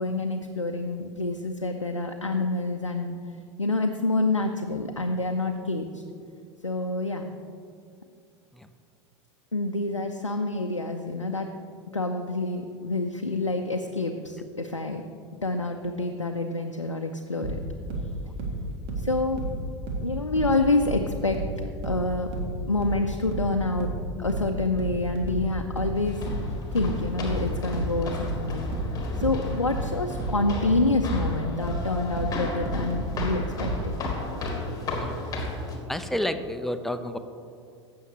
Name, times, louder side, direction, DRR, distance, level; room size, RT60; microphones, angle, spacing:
voice 1, 0.0-3.2 3.6-6.0 6.6-7.3 9.5-11.5 11.9-15.1 15.4-17.6 19.0-19.5 20.0-21.4 21.8-22.3 22.7-23.9 24.2-28.7 29.2-33.9, left 2 dB, 90° left, 4 dB, 0.4 m, -27 dB
sound 1, 17.4-20.6 20.8-33.9, right 3 dB, 40° right, 1.6 m, -32 dB
sound 2, 25.9-35.8, left 2 dB, 25° left, 1.6 m, -33 dB
voice 2, 26.4-26.8 29.4-29.5 34.9-35.2 35.9-37.2, left 1 dB, ahead, 9 dB, 0.4 m, -31 dB
15.0 x 6.4 x 3.1 m, 2.4 s
figure-of-eight pair, 85°, 15 cm